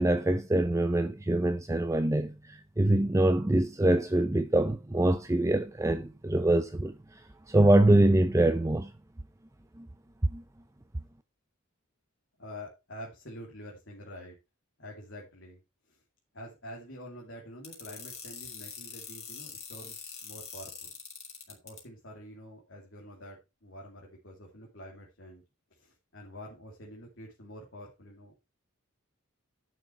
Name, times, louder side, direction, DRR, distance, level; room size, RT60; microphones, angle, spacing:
voice 1, 0.0-8.9 9.8-9.9 10.3-10.4, right 1 dB, 15° right, 0.5 m, -25 dB
voice 2, 12.4-14.4 14.8-15.6 15.9-16.0 16.3-20.9 21.5-25.4 25.7-28.3, equal, 60° left, 2.8 m, -47 dB
sound 1, 17.6-21.8, left 6 dB, 30° left, 3.4 m, -43 dB
11.0 x 6.5 x 4.6 m
head